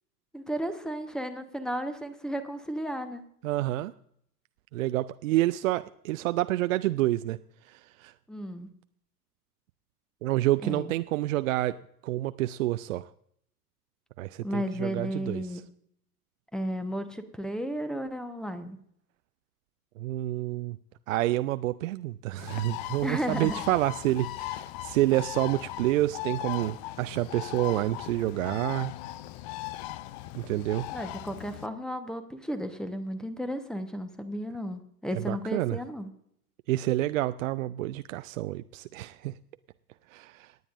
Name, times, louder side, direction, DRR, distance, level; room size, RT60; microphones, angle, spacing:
voice 1, 0.3-3.2 8.3-8.7 10.6-10.9 14.4-15.6 16.5-18.8 23.0-23.6 30.9-36.1, equal, ahead, 10 dB, 1.1 m, -34 dB
voice 2, 3.4-3.9 4.7-7.4 7.7-8.1 10.2-11.8 12.0-13.1 14.2-15.4 20.0-20.8 21.1-28.9 30.4-30.9 35.3-35.8 36.7-39.3 40.1-40.5, right 16 dB, 55° right, 12 dB, 0.5 m, -28 dB
Bird, 22.4-31.7, left 16 dB, 30° left, 0.4 m, -38 dB
28.0 x 9.3 x 2.6 m, 0.70 s
figure-of-eight pair, 85°, 46 cm